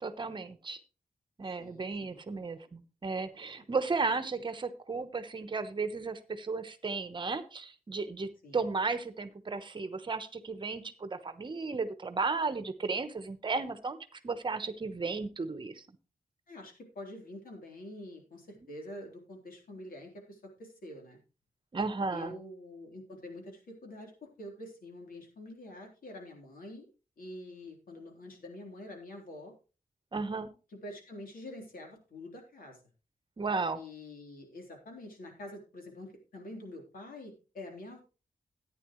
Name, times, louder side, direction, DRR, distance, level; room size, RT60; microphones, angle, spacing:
voice 1, 0.0-0.8 1.4-15.8 21.7-22.4 30.1-30.5 33.4-33.8, right 4 dB, 35° right, 11 dB, 1.0 m, -34 dB
voice 2, 1.6-2.2 8.4-8.7 16.5-21.2 22.1-26.9 27.2-29.5 30.8-32.8 33.7-38.0, left 1 dB, 80° left, 1 dB, 3.6 m, -46 dB
14.0 x 9.7 x 3.1 m, 0.33 s
wide cardioid pair, 175°, 15 cm